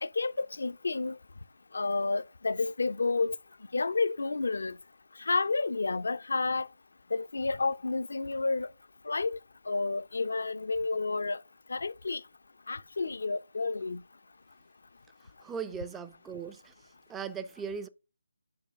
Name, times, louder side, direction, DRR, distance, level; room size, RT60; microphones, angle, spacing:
voice 1, 0.0-1.2 1.7-3.4 3.7-4.7 5.2-6.7 7.1-8.7 9.1-9.4 9.7-11.4 11.7-12.2 12.7-14.0, left 3 dB, 60° left, 0.5 m, -30 dB
voice 2, 15.4-16.7 17.1-17.9, right 6 dB, 10° right, 0.4 m, -38 dB
9.4 x 4.9 x 3.6 m
figure-of-eight pair, 150°, 0 cm